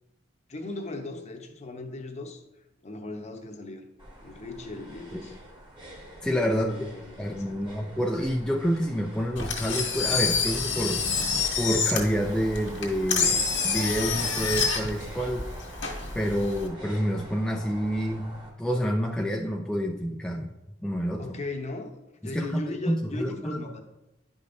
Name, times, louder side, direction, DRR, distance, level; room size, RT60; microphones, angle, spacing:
voice 1, 0.5-2.4 2.8-3.8 4.2-5.3 6.5-7.7 21.2-22.0 22.2-23.8, left 2 dB, 40° left, 4 dB, 0.8 m, -37 dB
sound 1, 4.0-18.5, right 1 dB, 25° right, 1.4 m, -45 dB
voice 2, 6.2-6.8 7.2-11.0 11.6-15.5 16.1-18.3 18.6-20.5 20.8-21.4 22.2-23.6, equal, 5° left, 1 dB, 0.4 m, -28 dB
Engine, 9.4-16.7, left 5 dB, 85° left, 1.7 m, -28 dB
11.0 x 5.1 x 2.6 m, 0.94 s
head